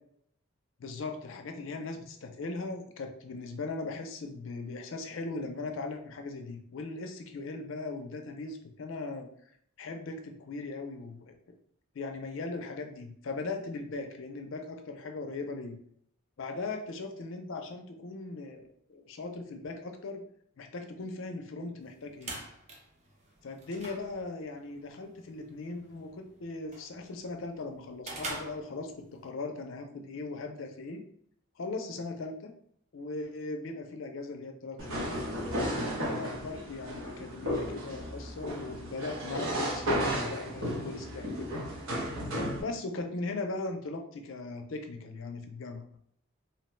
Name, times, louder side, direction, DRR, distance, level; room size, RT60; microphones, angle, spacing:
voice 1, 0.8-9.3 9.8-11.5 11.9-15.8 16.4-20.2 20.6-22.4 23.4-31.0 31.6-32.5 32.9-35.2 35.8-41.3 42.6-45.9, left 3 dB, 65° left, 4 dB, 0.4 m, -39 dB
sound 1, 21.8-29.3, right 2 dB, 30° right, 0.5 m, -46 dB
sound 2, 34.8-42.6, equal, 75° right, 0.9 m, -34 dB
2.8 x 2.1 x 3.0 m, 0.66 s
head